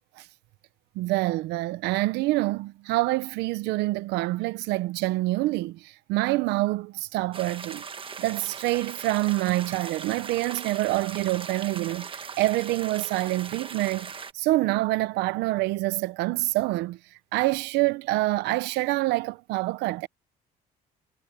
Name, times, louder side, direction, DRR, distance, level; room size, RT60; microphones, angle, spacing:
voice 1, 0.9-7.8 8.2-17.0 17.3-20.1, right 19 dB, 90° right, 0.8 m, -26 dB
sound 1, 7.3-14.3, right 6 dB, 30° right, 1.3 m, -39 dB
cardioid pair, 110°, 17 cm